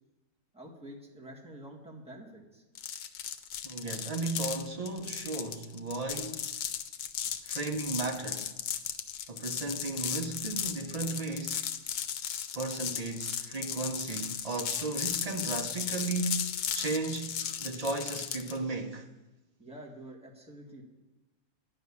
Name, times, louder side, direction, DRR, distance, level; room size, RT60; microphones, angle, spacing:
voice 1, 0.5-2.6 19.6-20.8, right 1 dB, 5° right, 1.6 m, -47 dB
sound 1, 2.8-18.6, left 9 dB, 80° left, 1.2 m, -36 dB
voice 2, 3.6-6.5 7.4-8.5 9.3-11.7 12.5-19.1, right 3 dB, 70° right, 0.3 m, -35 dB
10.5 x 6.0 x 8.4 m
omnidirectional pair, 1.6 m